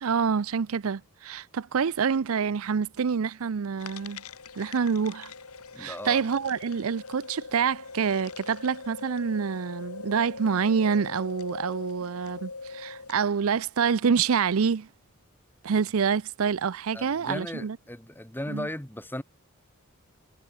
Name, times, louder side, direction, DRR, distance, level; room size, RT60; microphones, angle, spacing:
voice 1, 0.0-4.2 4.6-5.3 5.8-14.9 15.6-17.8 18.5-18.7, right 6 dB, 65° right, 0.5 m, -27 dB
sound 1, 3.8-13.3, left 4 dB, 85° left, 2.6 m, -42 dB
voice 2, 5.7-6.2 16.9-19.2, left 1 dB, 10° left, 1.8 m, -36 dB
head